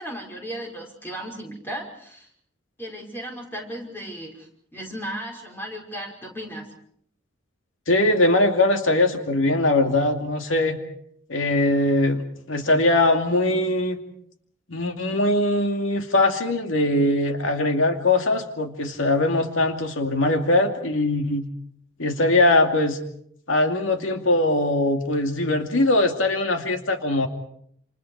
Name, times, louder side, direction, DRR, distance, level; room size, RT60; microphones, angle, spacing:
voice 1, 0.0-2.3 2.8-6.7, equal, 10° left, 0 dB, 5.5 m, -35 dB
voice 2, 7.9-10.8 11.3-14.0 14.7-21.5 22.0-23.0 23.5-27.3, left 2 dB, 85° left, 5 dB, 2.5 m, -21 dB
28.5 x 28.5 x 4.8 m, 0.67 s
head